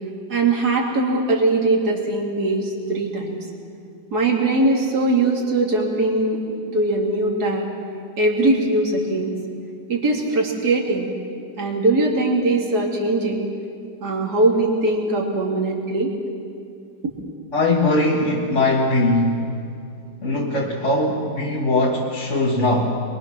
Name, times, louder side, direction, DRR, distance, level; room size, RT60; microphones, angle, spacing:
voice 1, 0.3-3.4 4.1-7.7 8.2-9.3 9.9-11.1 11.6-13.4 14.0-16.1, right 2 dB, 55° right, -1 dB, 3.2 m, -21 dB
voice 2, 17.5-19.5 20.2-22.9, left 2 dB, 40° left, -2 dB, 2.1 m, -20 dB
27.5 x 23.0 x 6.1 m, 2.4 s
omnidirectional pair, 2.0 m